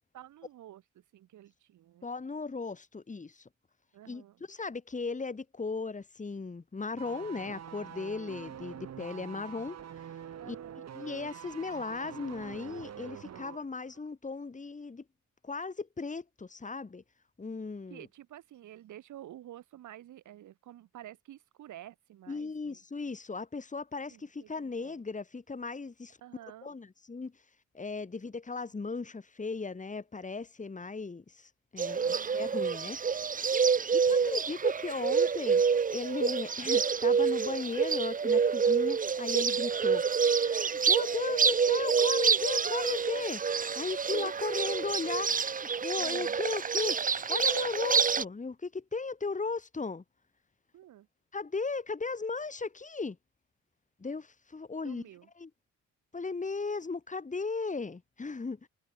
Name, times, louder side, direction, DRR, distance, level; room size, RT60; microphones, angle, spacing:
voice 1, 0.1-2.1 3.9-4.4 10.4-10.9 17.9-22.8 24.1-25.0 26.2-26.7 32.0-32.5 34.1-34.3 44.1-44.6 46.0-46.4 50.7-51.1 54.8-55.3, right 12 dB, 75° right, 4.2 m, -50 dB
voice 2, 2.0-3.5 4.1-9.8 10.4-10.6 10.9-15.0 15.4-17.0 17.4-18.1 22.3-26.2 26.6-27.3 27.7-33.0 33.4-35.6 35.9-43.4 43.8-45.3 45.8-47.0 47.3-50.0 51.3-53.2 54.0-55.0 55.4-55.5 56.1-58.6, left 4 dB, 25° left, 4.1 m, -36 dB
sound 1, 7.0-13.7 13.9-14.1, right 9 dB, 60° right, 4.7 m, -45 dB
Bird, 31.8-48.2, right 6 dB, 25° right, 0.8 m, -28 dB
cardioid pair, 90°, 30 cm